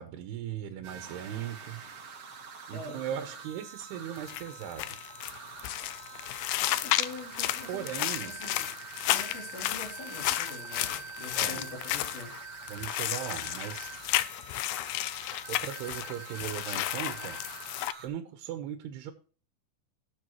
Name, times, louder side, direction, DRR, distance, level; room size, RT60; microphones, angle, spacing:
voice 1, 0.0-1.8 2.7-5.0 7.7-8.3 11.4-11.6 12.7-13.9 15.5-17.4 18.0-19.1, right 10 dB, 80° right, 8 dB, 2.8 m, -38 dB
sound 1, 0.8-18.1, right 6 dB, 55° right, 1.6 m, -45 dB
voice 2, 2.7-3.2 6.8-7.9 8.2-8.7 9.1-12.3, left 2 dB, 50° left, -1 dB, 4.3 m, -44 dB
sound 2, 4.2-17.9, left 15 dB, 80° left, 2.2 m, -33 dB
19.0 x 6.9 x 3.0 m, 0.40 s
omnidirectional pair, 4.8 m